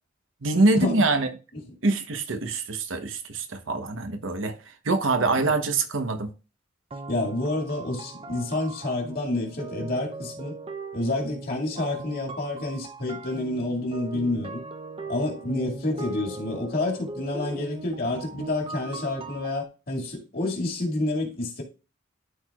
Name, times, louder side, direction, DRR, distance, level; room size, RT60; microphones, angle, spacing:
voice 1, 0.4-1.3 1.8-4.6 4.8-6.3, right 3 dB, 85° right, 1.0 m, -24 dB
sound 1, 6.9-19.6, right 2 dB, 30° right, 0.6 m, -39 dB
voice 2, 7.1-10.6 10.9-14.6 15.1-21.6, left 2 dB, 50° left, 2.1 m, -29 dB
13.0 x 4.6 x 2.4 m
head